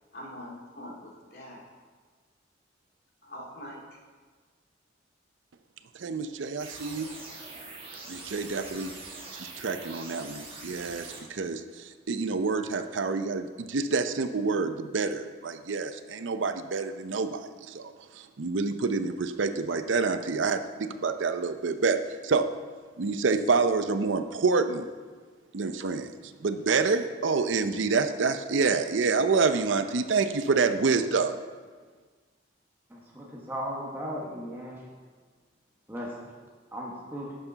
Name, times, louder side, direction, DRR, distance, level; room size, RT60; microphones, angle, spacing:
voice 1, 0.1-1.6 3.2-3.8, left 1 dB, 55° left, -3 dB, 2.2 m, -43 dB
voice 2, 6.0-7.1 8.1-8.9 9.3-22.5 23.0-24.9 25.5-26.1 26.4-31.4, right 4 dB, 85° right, 9 dB, 0.6 m, -27 dB
sound 1, 6.6-11.2, right 3 dB, 30° right, 1.4 m, -43 dB
voice 3, 32.9-34.9 35.9-36.3 36.7-37.4, equal, 10° right, -4 dB, 1.2 m, -37 dB
11.5 x 6.8 x 4.0 m, 1.5 s
head